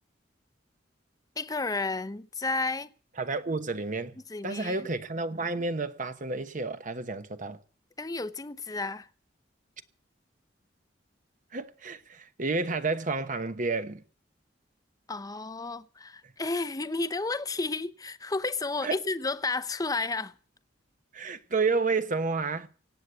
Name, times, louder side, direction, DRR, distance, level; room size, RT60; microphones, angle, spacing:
voice 1, 1.4-2.9 4.3-4.9 8.0-9.1 15.1-20.3, left 3 dB, 20° left, 0.7 m, -32 dB
voice 2, 3.2-7.6 11.5-14.0 18.8-19.0 21.1-22.7, right 3 dB, 45° right, 1.1 m, -30 dB
17.5 x 8.4 x 8.0 m
head